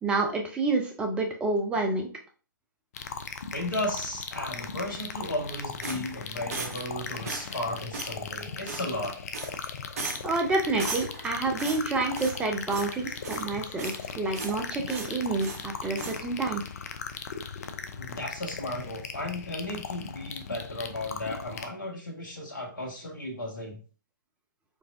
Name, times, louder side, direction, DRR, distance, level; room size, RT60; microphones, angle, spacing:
voice 1, 0.0-2.1 10.2-16.6, right 3 dB, 10° right, 3 dB, 0.7 m, -28 dB
sound 1, 2.9-21.7, left 6 dB, 45° left, 0.5 m, -38 dB
voice 2, 3.5-9.2 17.9-23.8, left 1 dB, 65° left, 0 dB, 1.6 m, -35 dB
sound 2, 5.8-6.9 7.2-7.6 7.9-8.2 8.7-9.1 9.3-9.7 10.0-10.4 10.8-11.3 11.6-12.4 12.7-13.0 13.2-14.0 14.3-14.6 14.9-15.6 16.0-16.2, right 3 dB, 45° right, 0.8 m, -37 dB
4.6 x 3.4 x 2.5 m, 0.38 s
figure-of-eight pair, 125°, 11 cm